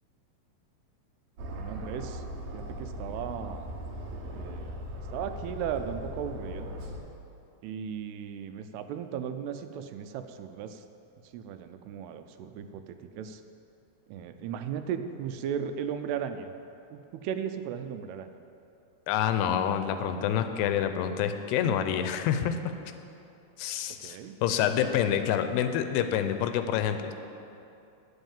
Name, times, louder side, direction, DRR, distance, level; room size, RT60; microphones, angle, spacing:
Aircraft, 1.4-7.0, equal, 65° right, 1.9 m, -39 dB
voice 1, 1.5-2.2 2.5-3.7 4.2-4.7 5.1-6.7 7.6-10.8 11.3-13.4 14.1-16.5 16.9-18.3 23.9-24.4, right 8 dB, 85° right, 9 dB, 2.6 m, -36 dB
voice 2, 19.1-22.6 23.6-27.1, left 9 dB, 90° left, 8 dB, 2.7 m, -27 dB
9.2 x 8.1 x 7.1 m, 2.7 s
omnidirectional pair, 4.7 m